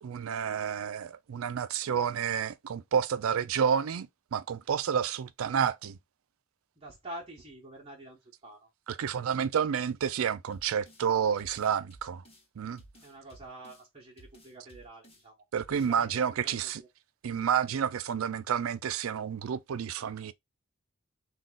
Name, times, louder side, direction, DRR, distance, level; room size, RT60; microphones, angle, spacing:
voice 1, 0.0-6.0 8.9-12.2 12.6-12.8 15.5-16.8 17.2-20.3, right 7 dB, 90° right, 0.4 m, -30 dB
voice 2, 6.8-8.7 13.0-15.4 15.7-16.9, right 1 dB, 30° right, 0.9 m, -47 dB
sound 1, 10.5-11.1 11.4-12.5 12.8-13.8 14.2-15.2 15.6-15.9, right 1 dB, 30° left, 1.3 m, -55 dB
3.7 x 2.3 x 3.8 m
head